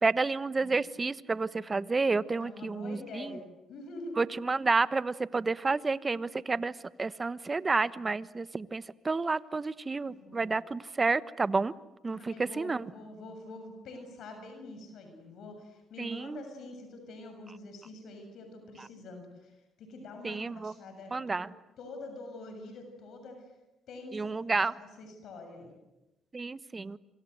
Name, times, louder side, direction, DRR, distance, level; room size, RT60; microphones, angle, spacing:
voice 1, 0.0-3.4 4.2-11.7 12.0-12.9 16.0-16.4 18.8-18.9 20.2-20.7 21.1-21.5 24.1-24.7 26.3-27.0, right 3 dB, 30° right, 16 dB, 1.1 m, -30 dB
voice 2, 2.4-3.4 3.7-4.2 10.2-10.5 12.1-21.4 21.8-23.5 23.9-24.3 24.6-24.7 25.0-25.7, left 2 dB, 70° left, 5 dB, 7.0 m, -45 dB
27.0 x 25.5 x 8.0 m, 0.97 s
supercardioid pair, 70°, 0 cm